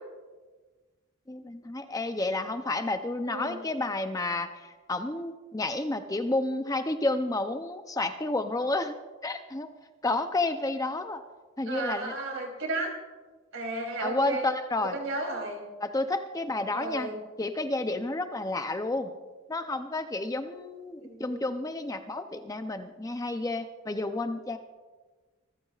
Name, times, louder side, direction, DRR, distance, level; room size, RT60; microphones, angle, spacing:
voice 1, 1.3-8.9 9.2-9.7 10.0-11.2 11.6-12.1 14.0-15.0 15.8-17.1 17.4-19.1 19.5-24.6, left 2 dB, 15° left, 7 dB, 0.5 m, -30 dB
voice 2, 3.3-3.6 11.6-12.9 13.5-14.5 14.9-15.6 16.7-17.2 21.0-21.4, right 2 dB, 65° right, 1 dB, 3.2 m, -33 dB
25.0 x 14.5 x 2.4 m, 1.3 s
head